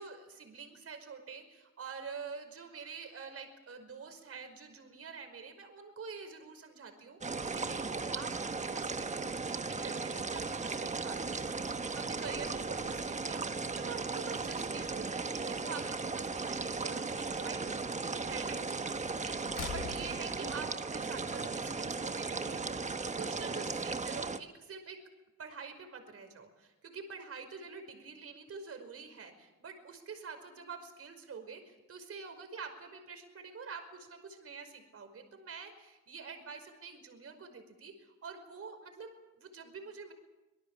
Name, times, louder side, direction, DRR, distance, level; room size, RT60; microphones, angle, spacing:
voice 1, 0.0-8.3 8.6-11.6 12.0-25.0 25.4-40.1, right 5 dB, 50° right, 7 dB, 5.3 m, -47 dB
sound 1, 7.2-24.4, right 4 dB, 25° right, 1.3 m, -36 dB
sound 2, 12.3-21.3, left 7 dB, 80° left, 5.4 m, -51 dB
26.0 x 19.5 x 7.4 m, 1.1 s
cardioid pair, 90°, 30 cm